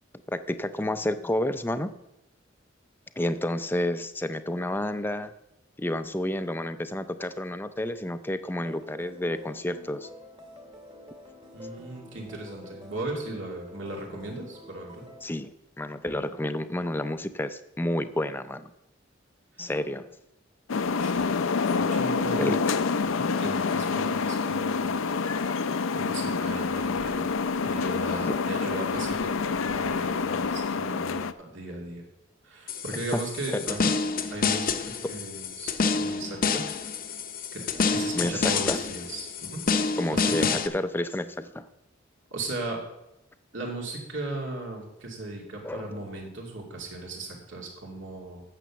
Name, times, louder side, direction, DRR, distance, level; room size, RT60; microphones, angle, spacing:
voice 1, 0.3-1.9 3.2-5.3 5.8-10.1 15.2-18.7 19.6-20.1 22.4-22.6 33.1-33.2 33.5-33.6 35.0-35.1 37.9-38.8 40.0-41.7 45.6-45.9, left 1 dB, 10° left, 11 dB, 0.5 m, -30 dB
sound 1, 8.5-15.2, left 1 dB, 30° right, 2.0 m, -47 dB
voice 2, 11.5-15.0 21.0-22.6 23.0-25.0 25.9-27.3 27.6-32.0 32.4-33.9 34.3-36.6 37.5-37.6 37.9-39.6 40.1-40.5 42.3-42.8 43.5-48.4, right 2 dB, 70° right, 0 dB, 2.6 m, -37 dB
sound 2, 20.7-31.3, left 5 dB, 85° left, 0.5 m, -27 dB
sound 3, 32.7-40.7, left 5 dB, 45° left, 0.7 m, -28 dB
9.2 x 6.7 x 7.1 m, 0.89 s
head